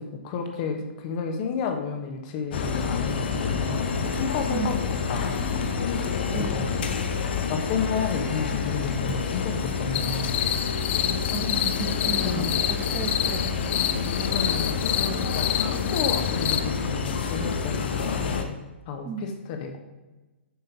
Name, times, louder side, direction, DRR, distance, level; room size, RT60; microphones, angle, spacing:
voice 1, 0.0-5.4 6.4-6.8 7.1-10.3 12.2-12.6 14.2-18.6 18.9-19.8, left 5 dB, 40° left, 5 dB, 1.2 m, -32 dB
sound 1, 2.5-18.4, left 5 dB, 55° left, 0.8 m, -28 dB
sound 2, 9.9-16.6, left 11 dB, 20° left, 0.3 m, -28 dB
voice 2, 11.3-13.7 19.0-19.2, right 6 dB, 20° right, 7 dB, 0.7 m, -34 dB
7.2 x 5.7 x 3.9 m, 1.1 s
figure-of-eight pair, 115°, 6 cm